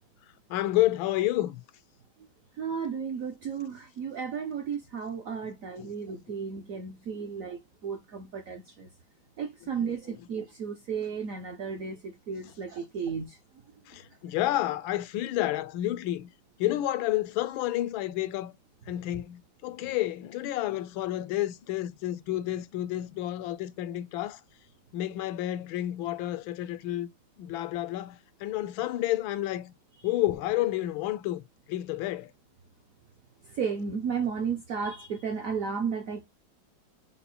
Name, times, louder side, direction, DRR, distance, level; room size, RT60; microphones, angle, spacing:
voice 1, 0.5-1.6 5.8-5.9 7.2-7.3 9.8-9.9 13.9-16.3 16.6-18.5 18.9-24.4 24.9-27.1 27.4-29.7 30.0-31.4 31.7-32.3, left 15 dB, 85° left, 1.4 m, -30 dB
voice 2, 2.6-8.9 9.4-13.4 33.5-36.3, right 6 dB, 70° right, 0.8 m, -34 dB
5.5 x 2.1 x 4.1 m
omnidirectional pair, 2.1 m